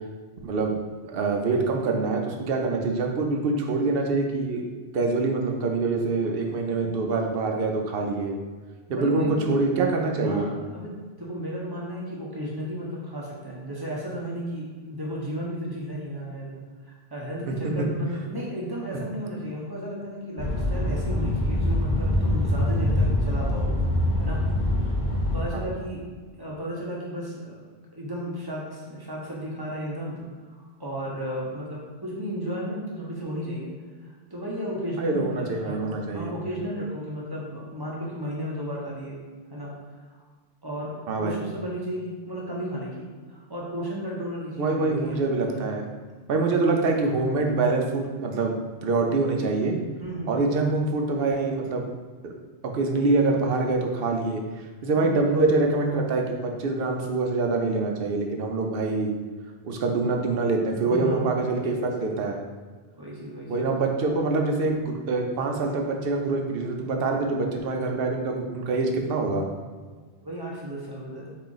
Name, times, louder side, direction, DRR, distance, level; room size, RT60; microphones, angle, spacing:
voice 1, 1.0-4.6 4.9-8.4 8.9-10.5 17.5-17.6 25.5-25.6 35.0-36.3 41.1-41.4 44.6-45.8 46.3-48.6 48.8-49.7 50.3-51.9 52.2-52.3 52.7-54.4 54.8-59.1 59.6-62.4 63.5-69.4, right 3 dB, 65° right, 2 dB, 0.8 m, -25 dB
voice 2, 8.9-9.6 10.2-23.7 24.2-24.4 25.3-26.0 26.4-27.6 27.9-30.2 30.5-33.7 34.0-39.2 39.5-40.0 40.6-45.8 50.0-50.7 54.9-55.2 60.9-61.2 61.7-61.9 62.9-63.8 70.2-71.3, equal, 25° right, -5 dB, 0.8 m, -34 dB
sound 1, 20.4-25.4, left 1 dB, 50° left, 1.0 m, -24 dB
4.1 x 2.5 x 3.8 m, 1.4 s
omnidirectional pair, 1.1 m